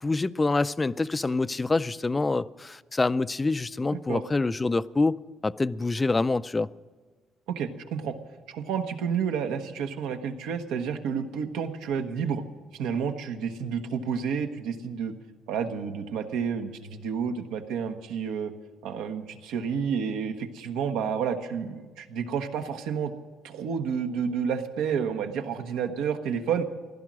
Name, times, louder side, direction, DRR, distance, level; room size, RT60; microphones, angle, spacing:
voice 1, 0.0-6.7, left 3 dB, 20° left, 0.4 m, -26 dB
voice 2, 7.5-8.1 8.5-12.4 12.7-15.1 15.5-18.5 18.8-23.1 23.4-26.6, right 7 dB, 85° right, 1.2 m, -30 dB
15.5 x 12.0 x 6.2 m
cardioid pair, 105°, 0 cm